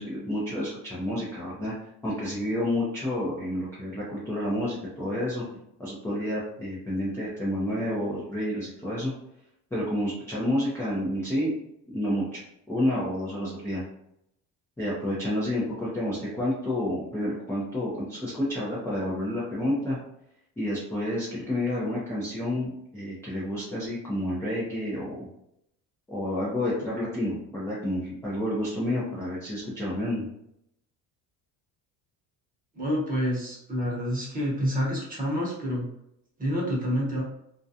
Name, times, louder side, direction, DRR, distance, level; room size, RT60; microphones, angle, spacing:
voice 1, 0.0-1.7 2.0-5.4 5.8-9.1 9.7-11.5 11.9-12.4 12.7-13.8 14.8-20.0 20.6-25.3 26.1-30.3, left 1 dB, 5° left, -9 dB, 0.5 m, -29 dB
voice 2, 32.7-35.9 36.4-37.2, equal, 20° right, -4 dB, 0.9 m, -28 dB
2.4 x 2.2 x 2.7 m, 0.77 s
cardioid pair, 145°, 41 cm